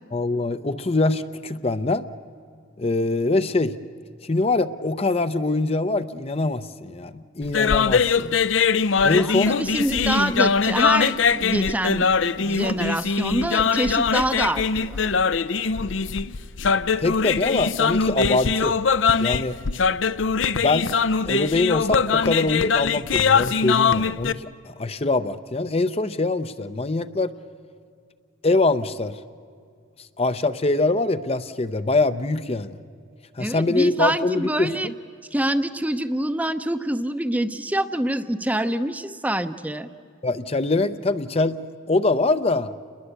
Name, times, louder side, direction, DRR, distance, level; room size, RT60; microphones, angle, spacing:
voice 1, 0.1-2.0 2.8-3.7 4.2-8.4 9.0-9.5 17.0-18.8 19.2-19.6 20.5-20.9 21.3-27.3 28.4-29.2 30.2-32.8 33.4-34.9 40.2-41.6 41.9-42.7, left 2 dB, 30° left, 11 dB, 0.6 m, -23 dB
sound 1, 7.4-24.3, left 5 dB, 75° left, 0.6 m, -22 dB
voice 2, 9.2-12.1 12.4-15.0 33.4-34.9 35.3-39.9, right 1 dB, 10° right, 10 dB, 0.7 m, -25 dB
29.5 x 21.0 x 8.2 m, 2.2 s
head